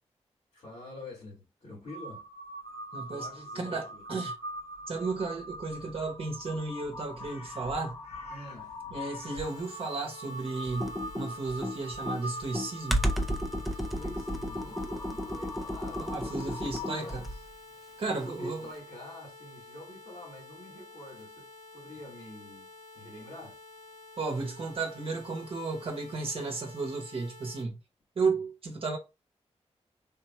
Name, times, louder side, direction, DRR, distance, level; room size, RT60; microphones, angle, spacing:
voice 1, 0.5-2.3 3.1-4.0 8.3-8.8 13.7-17.4 18.1-23.6, left 1 dB, 90° left, 2.2 m, -46 dB
Crow, 1.9-17.4, left 1 dB, 75° left, 1.3 m, -43 dB
voice 2, 2.9-3.3 3.5-4.3 4.9-8.0 8.9-13.1 16.0-17.2 18.0-18.6 24.2-27.8 28.2-29.0, right 3 dB, 55° right, 0.8 m, -34 dB
sound 1, 9.3-27.6, left 2 dB, 55° left, 1.4 m, -51 dB
Computer keyboard, 10.7-17.5, equal, ahead, 0.5 m, -33 dB
3.7 x 2.3 x 4.2 m
wide cardioid pair, 135°, 11 cm